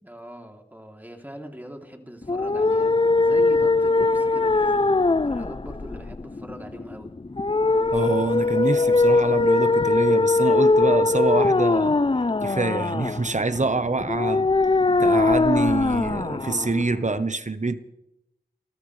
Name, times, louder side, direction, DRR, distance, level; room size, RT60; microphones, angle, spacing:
voice 1, 0.0-7.1, equal, 10° right, 3.1 m, -41 dB
sound 1, 2.2-17.2, left 3 dB, 30° left, 0.5 m, -21 dB
voice 2, 7.9-12.0 12.4-14.5 15.0-17.8, right 3 dB, 45° right, 1.1 m, -25 dB
30.0 x 13.5 x 3.3 m
wide cardioid pair, 40°, 17 cm